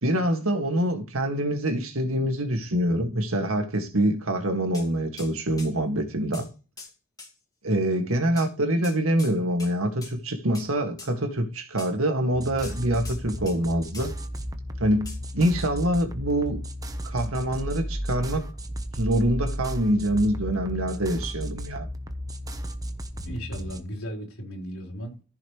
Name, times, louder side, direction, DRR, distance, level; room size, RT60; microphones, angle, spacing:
voice 1, 0.0-6.5 7.6-14.1 14.8-16.6 17.0-18.5 19.0-21.9, right 1 dB, 80° right, 2.0 m, -25 dB
sound 1, 4.7-4.9 5.2-5.3 5.6-5.7 6.3-6.5 6.8-6.9 7.2-7.3 8.4-8.5 8.8-9.3 9.6-9.7 10.0-10.2 10.5-10.7 11.0-11.1 11.8-11.9 12.6-13.6 13.9-14.1 15.1-15.2, left 3 dB, 20° left, 2.4 m, -42 dB
sound 2, 12.3-23.8, equal, 20° right, 1.0 m, -34 dB
voice 2, 23.3-25.2, equal, 80° left, 4.0 m, -36 dB
14.5 x 5.8 x 3.2 m
head